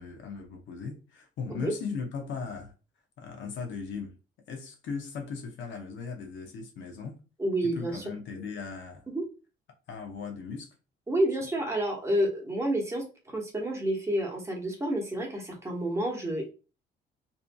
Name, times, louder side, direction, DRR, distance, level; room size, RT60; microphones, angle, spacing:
voice 1, 0.0-2.7 3.2-4.2 4.5-7.2 7.6-9.1 9.9-10.7, left 5 dB, 70° left, 0.6 m, -38 dB
voice 2, 7.4-8.0 9.1-9.2 11.1-13.0 13.3-16.5, right 1 dB, 15° right, 1.0 m, -29 dB
2.6 x 2.5 x 2.2 m
cardioid pair, 90°, 20 cm